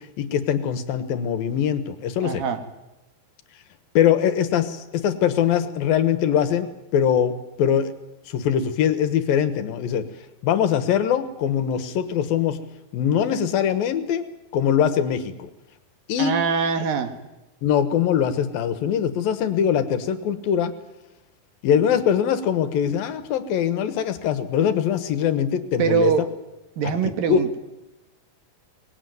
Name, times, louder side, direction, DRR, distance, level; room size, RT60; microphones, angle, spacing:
voice 1, 0.0-2.4 3.9-7.9 8.3-10.1 10.4-12.6 12.9-14.2 14.5-15.5 16.1-16.4 17.6-20.7 21.6-26.1 27.0-27.4, left 9 dB, 75° left, 11 dB, 3.0 m, -22 dB
voice 2, 2.2-2.7 16.2-17.2 25.8-26.3 26.8-27.6, right 7 dB, 70° right, 7 dB, 3.5 m, -23 dB
23.5 x 19.5 x 9.4 m, 1.0 s
omnidirectional pair, 4.2 m